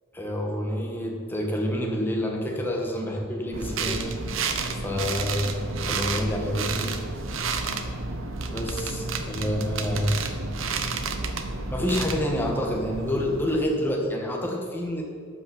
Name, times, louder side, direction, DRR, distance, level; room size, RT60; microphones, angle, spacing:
voice 1, 0.1-4.1 4.7-6.9 8.5-10.1 11.7-15.0, equal, 10° left, 0 dB, 1.6 m, -28 dB
sound 1, 3.5-13.7, right 4 dB, 80° right, 0.9 m, -31 dB
12.5 x 5.7 x 7.3 m, 2.2 s
head